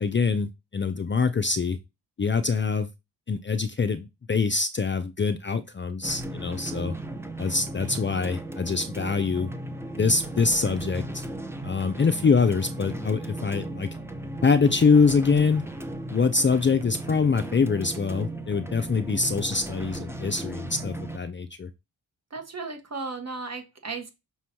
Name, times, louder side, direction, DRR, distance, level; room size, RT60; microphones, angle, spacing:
voice 1, 0.0-1.8 2.2-2.9 3.3-6.9 7.4-9.5 9.9-11.2 11.6-13.9 14.4-15.6 16.1-21.7, left 5 dB, 30° left, 0.5 m, -24 dB
sound 1, 6.0-21.2, right 2 dB, 5° right, 0.9 m, -36 dB
voice 2, 22.3-24.1, right 4 dB, 40° right, 1.7 m, -35 dB
6.1 x 3.0 x 5.7 m
cardioid pair, 95°, 39 cm